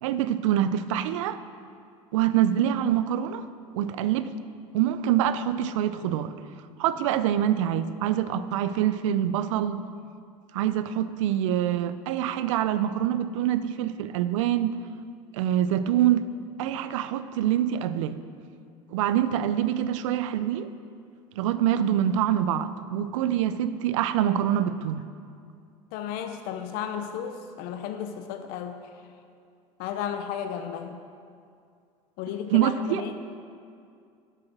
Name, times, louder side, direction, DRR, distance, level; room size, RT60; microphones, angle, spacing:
voice 1, 0.0-1.4 2.1-3.4 3.7-4.3 4.7-6.3 6.8-9.8 10.5-14.8 15.3-16.3 16.6-18.2 18.9-20.7 21.4-25.0 32.5-33.0, right 11 dB, 80° right, 13 dB, 0.5 m, -25 dB
voice 2, 25.9-29.0 29.8-31.0 32.2-33.2, left 8 dB, 65° left, 7 dB, 0.7 m, -34 dB
7.7 x 7.6 x 6.1 m, 2.4 s
hypercardioid pair, 85°, 16 cm